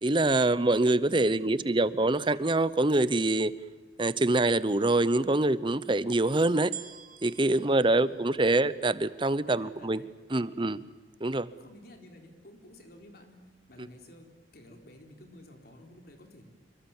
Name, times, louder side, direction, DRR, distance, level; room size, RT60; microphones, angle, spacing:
voice 1, 0.0-3.5 4.0-6.7 7.2-10.0 10.3-10.8 11.2-11.5 13.8-13.9, right 2 dB, 25° right, 16 dB, 0.8 m, -25 dB
voice 2, 1.3-2.0 7.6-8.6 9.5-10.7 11.6-13.4 13.7-16.5, left 1 dB, 55° left, 4 dB, 4.0 m, -53 dB
sound 1, 6.7-9.1 9.8-9.9, right 9 dB, 45° right, 2.1 m, -46 dB
27.5 x 24.0 x 7.3 m, 1.3 s
head